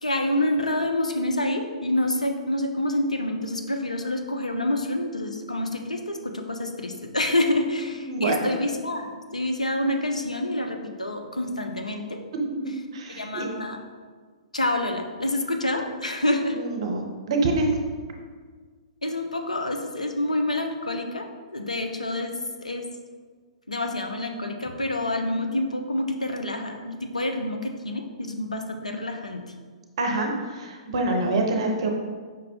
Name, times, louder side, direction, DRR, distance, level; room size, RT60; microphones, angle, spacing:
voice 1, 0.0-12.2 13.1-13.8 14.5-16.6 19.0-22.9 23.7-29.4, left 1 dB, 80° left, 4 dB, 0.5 m, -27 dB
voice 2, 8.0-8.5 12.9-13.5 16.5-17.7 30.0-31.9, right 2 dB, 50° right, 3 dB, 0.6 m, -26 dB
5.2 x 2.1 x 4.0 m, 1.5 s
figure-of-eight pair, 115°, 4 cm